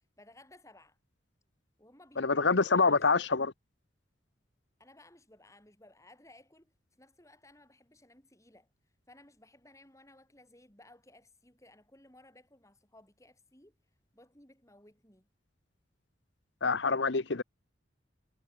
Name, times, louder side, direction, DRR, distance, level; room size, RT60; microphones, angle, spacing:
voice 1, 0.2-1.0 1.8-3.3 4.8-8.7 9.1-13.7 14.1-15.3, left 1 dB, 15° left, 5.7 m, -59 dB
voice 2, 2.2-3.5 16.6-17.4, left 4 dB, 70° left, 1.0 m, -26 dB
head